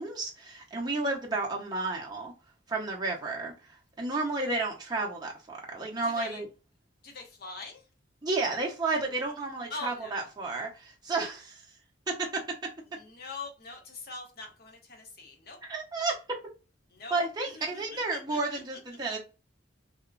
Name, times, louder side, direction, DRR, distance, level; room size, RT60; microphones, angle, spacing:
voice 1, 0.0-2.3 2.7-3.5 4.0-6.5 8.2-11.6 12.1-12.4 15.6-16.4 17.1-19.2, right 3 dB, 20° right, 0.5 m, -32 dB
voice 2, 6.0-6.4 7.0-7.8 9.7-10.3 12.9-15.6 16.9-17.2 17.5-18.6, left 3 dB, 50° left, 0.8 m, -43 dB
2.8 x 2.1 x 2.3 m
head